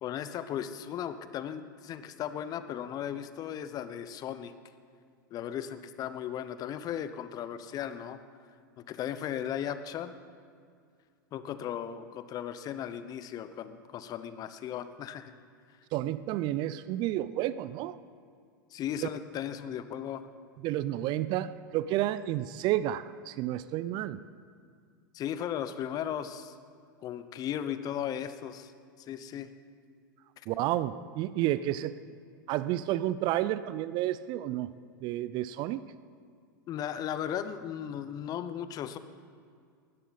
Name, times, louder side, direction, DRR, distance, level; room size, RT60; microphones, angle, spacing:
voice 1, 0.0-4.5 5.3-8.2 8.8-10.1 11.3-15.3 18.7-20.3 25.1-26.6 27.0-28.7 29.0-29.5 36.7-39.0, left 9 dB, 35° left, 12 dB, 0.8 m, -36 dB
voice 2, 15.9-17.9 20.6-24.2 30.5-31.9 32.5-34.7 35.0-35.8, right 13 dB, 45° right, 15 dB, 0.5 m, -31 dB
19.0 x 13.0 x 4.1 m, 2.1 s
hypercardioid pair, 95°, 11 cm